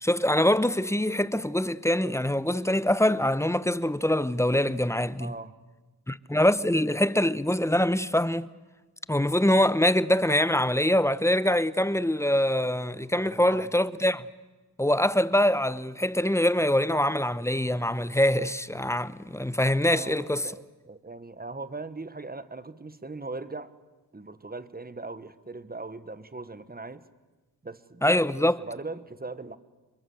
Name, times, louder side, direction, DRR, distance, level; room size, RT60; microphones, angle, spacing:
voice 1, 0.0-5.3 6.1-8.5 9.1-14.3 14.8-20.5 28.0-28.6, left 1 dB, 5° left, 0.9 m, -24 dB
voice 2, 5.2-5.6 12.9-13.7 19.9-23.7 24.1-27.0 27.6-28.0 28.6-29.6, right 3 dB, 20° right, 1.4 m, -40 dB
27.5 x 22.5 x 7.9 m
cardioid pair, 70°, 41 cm